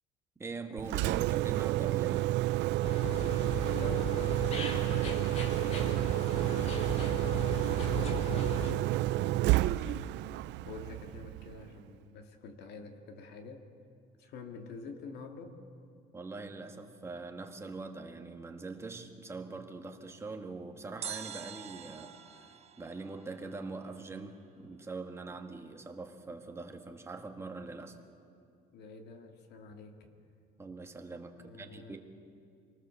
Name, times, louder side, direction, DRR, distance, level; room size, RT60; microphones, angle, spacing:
voice 1, 0.4-2.3 16.1-28.0 30.6-32.0, right 3 dB, 15° right, 4 dB, 1.4 m, -43 dB
Engine, 0.8-11.7, right 17 dB, 75° right, 0.4 m, -30 dB
sound 1, 2.8-8.7, left 4 dB, 35° left, 2.3 m, -38 dB
voice 2, 3.7-7.3 7.9-10.2 10.7-13.7 14.2-15.6 28.7-30.1 31.4-32.0, left 4 dB, 65° left, 5 dB, 2.1 m, -47 dB
sound 2, 21.0-24.1 24.3-24.4, right 8 dB, 35° right, 1.1 m, -45 dB
26.0 x 19.0 x 6.9 m, 2.4 s
cardioid pair, 170°, 18 cm